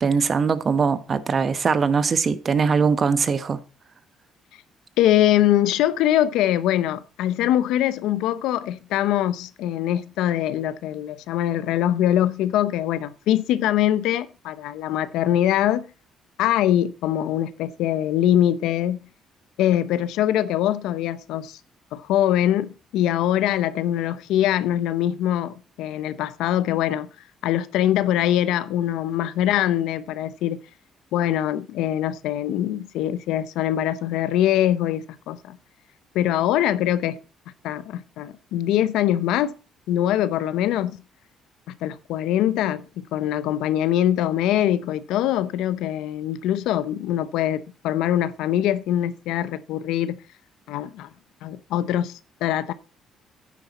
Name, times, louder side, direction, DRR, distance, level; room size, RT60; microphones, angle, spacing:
voice 1, 0.0-3.6, right 5 dB, 45° right, 1.1 m, -21 dB
voice 2, 5.0-15.9 16.4-19.0 19.6-21.6 21.9-27.1 27.4-30.6 31.1-35.6 36.1-37.2 37.6-39.6 39.9-41.0 41.8-50.2 50.7-51.1 51.4-52.7, left 12 dB, 85° left, 0.7 m, -23 dB
9.6 x 9.4 x 4.2 m
cardioid pair, 80°, 0 cm